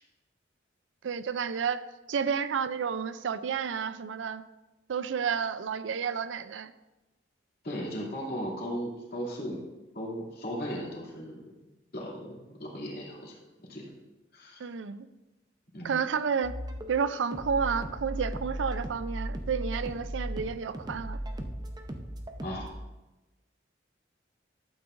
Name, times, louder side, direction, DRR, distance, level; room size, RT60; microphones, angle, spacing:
voice 1, 1.0-1.8 2.1-4.4 4.9-6.7 14.6-15.1 15.8-16.6 16.9-21.2, right 6 dB, 90° right, 14 dB, 0.4 m, -31 dB
voice 2, 7.6-9.6 9.9-11.4 11.9-13.4 13.7-13.9 14.3-14.6 15.7-16.0 22.4-22.7, equal, 55° left, -4 dB, 2.6 m, -36 dB
sound 1, 16.4-22.7, right 1 dB, 20° right, 0.7 m, -37 dB
12.0 x 8.6 x 2.5 m, 1.1 s
head